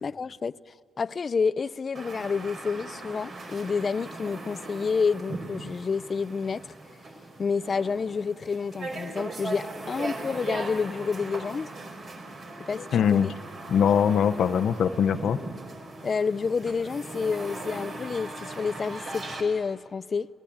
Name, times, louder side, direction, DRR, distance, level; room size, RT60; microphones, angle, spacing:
voice 1, 0.0-0.6 1.0-6.7 7.4-11.7 12.7-12.8 13.1-13.3 16.0-20.3, left 5 dB, 45° left, 0.5 m, -29 dB
sound 1, 2.0-19.4, right 2 dB, 55° right, 4.6 m, -39 dB
voice 2, 12.7-13.3 13.7-15.4, left 8 dB, 70° left, 0.8 m, -22 dB
28.0 x 18.0 x 8.8 m
cardioid pair, 90°, 0 cm